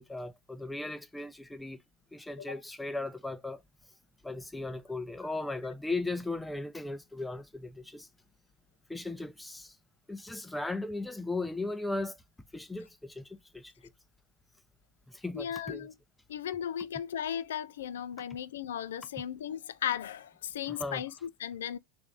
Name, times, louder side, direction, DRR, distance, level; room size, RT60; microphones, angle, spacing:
voice 1, 0.0-1.8 2.1-3.6 4.2-8.1 8.9-9.7 10.1-12.2 12.5-13.3 13.5-13.7 15.1-15.9 20.7-21.0, left 2 dB, 5° left, 0.6 m, -37 dB
voice 2, 15.3-15.9 16.3-21.8, left 9 dB, 80° left, 0.3 m, -36 dB
3.3 x 2.6 x 3.5 m
hypercardioid pair, 95°, 0 cm